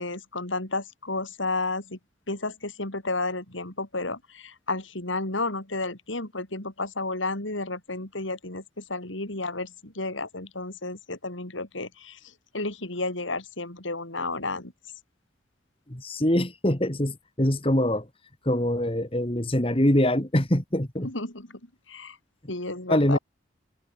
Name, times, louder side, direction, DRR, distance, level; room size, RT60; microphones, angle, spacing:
voice 1, 0.0-2.0 2.3-14.7 21.0-21.6 21.9-22.2 22.5-23.2, left 2 dB, 90° left, 5.3 m, -32 dB
voice 2, 15.9-18.1 18.5-21.1 22.9-23.2, left 1 dB, 30° left, 2.3 m, -24 dB
head